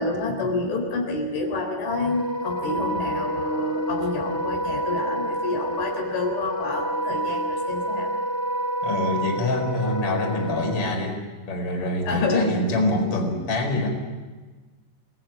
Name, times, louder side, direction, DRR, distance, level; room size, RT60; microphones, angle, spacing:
voice 1, 0.0-8.1 12.0-12.6, left 2 dB, 70° left, 2 dB, 6.3 m, -28 dB
Wind instrument woodwind instrument, 1.8-10.9, right 1 dB, 5° left, 2.7 m, -28 dB
voice 2, 8.8-11.2 11.5-13.9, left 2 dB, 30° left, 2 dB, 5.0 m, -25 dB
29.0 x 19.0 x 9.0 m, 1.3 s
omnidirectional pair, 5.6 m